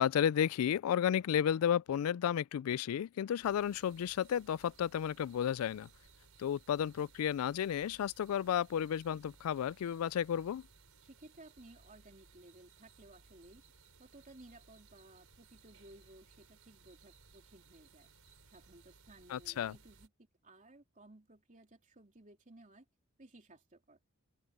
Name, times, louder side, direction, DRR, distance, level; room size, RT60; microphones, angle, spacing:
voice 1, 0.0-5.9 6.4-10.6 19.3-19.8, left 9 dB, 80° left, 0.3 m, -32 dB
sound 1, 3.4-20.1, right 4 dB, 75° right, 6.3 m, -62 dB
voice 2, 11.0-13.6 14.0-18.1 18.5-22.8 23.2-24.0, right 2 dB, 35° right, 3.4 m, -58 dB
open air
head